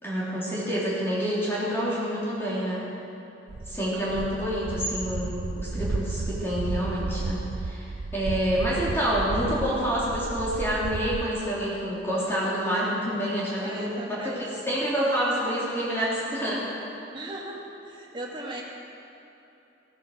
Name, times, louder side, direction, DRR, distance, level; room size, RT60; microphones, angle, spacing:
voice 1, 0.0-2.8 3.7-13.9 14.2-16.7, equal, 15° left, -9 dB, 3.2 m, -28 dB
sound 1, 3.5-11.3, right 3 dB, 85° right, 0.6 m, -33 dB
voice 2, 13.6-14.4 17.1-18.6, right 1 dB, 25° right, -2 dB, 2.0 m, -38 dB
16.5 x 9.2 x 6.6 m, 3.0 s
head